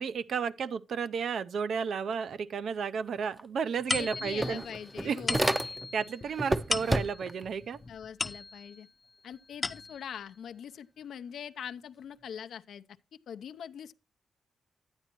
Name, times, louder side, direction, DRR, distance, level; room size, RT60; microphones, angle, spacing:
voice 1, 0.0-4.6 5.0-5.4 5.9-7.8, right 6 dB, 70° right, 0.5 m, -32 dB
sound 1, 3.4-3.5 3.8-6.0 6.4-7.4, right 1 dB, 15° right, 0.5 m, -31 dB
sound 2, 3.9-8.9 9.3-10.2, left 3 dB, 35° left, 0.6 m, -37 dB
voice 2, 4.0-5.6 7.9-8.9 9.2-12.8 13.3-13.9, left 8 dB, 80° left, 0.5 m, -43 dB
10.5 x 8.9 x 2.9 m
cardioid pair, 75°, 0 cm